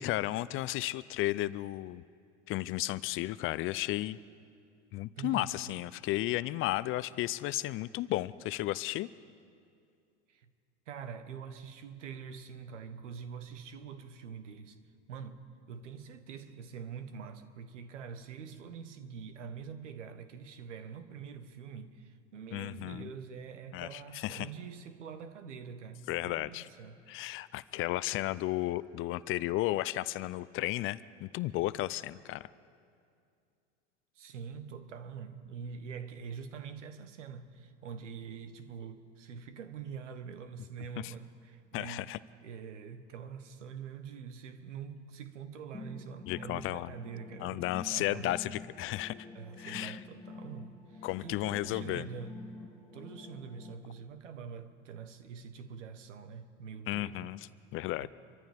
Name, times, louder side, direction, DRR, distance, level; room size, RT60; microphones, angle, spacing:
voice 1, 0.0-2.0 2.5-4.2 4.9-9.1 22.5-23.1 23.7-24.5 26.1-26.7 27.1-32.5 41.0-41.1 41.7-42.2 46.3-46.9 47.4-48.5 48.8-49.1 49.6-50.0 51.0-52.1 56.9-58.1, left 16 dB, 35° left, 0.4 m, -33 dB
voice 2, 5.2-5.5 10.3-10.5 10.9-14.8 15.1-27.0 34.1-42.1 42.4-48.6 49.3-52.4 52.9-57.3 58.0-58.1, right 6 dB, 85° right, 1.3 m, -45 dB
sound 1, 45.7-53.7, left 3 dB, 10° left, 2.7 m, -48 dB
26.5 x 14.0 x 3.5 m
hypercardioid pair, 100°, 36 cm